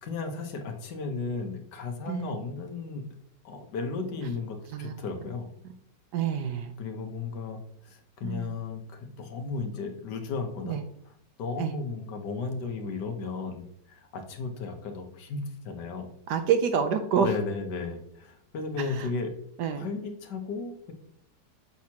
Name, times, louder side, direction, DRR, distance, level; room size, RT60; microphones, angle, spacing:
voice 1, 0.0-3.0 3.4-5.5 6.8-10.8 11.1-11.2 11.4-16.1 17.2-19.3 19.8-20.9, left 4 dB, 75° left, 5 dB, 1.5 m, -35 dB
voice 2, 6.1-6.7 8.2-8.6 10.6-10.8 11.6-11.7 16.3-17.3 18.8-19.1 19.6-19.9, right 7 dB, 75° right, 8 dB, 1.1 m, -27 dB
7.3 x 5.9 x 2.8 m, 0.70 s
omnidirectional pair, 1.9 m